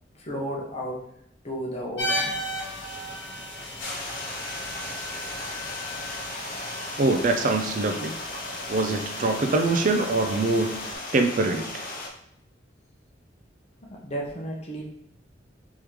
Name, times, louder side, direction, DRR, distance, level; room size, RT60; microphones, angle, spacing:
voice 1, 0.1-1.1 1.4-2.4 13.8-14.8, equal, 35° left, -2 dB, 1.0 m, -33 dB
sound 1, 2.0-10.9, equal, 80° left, 1.2 m, -35 dB
Stream, 3.8-12.1, left 2 dB, 50° left, 0.7 m, -36 dB
voice 2, 7.0-8.1 8.7-10.7 11.1-11.7, right 3 dB, 45° right, 5 dB, 0.4 m, -23 dB
4.7 x 3.6 x 3.1 m, 0.71 s
head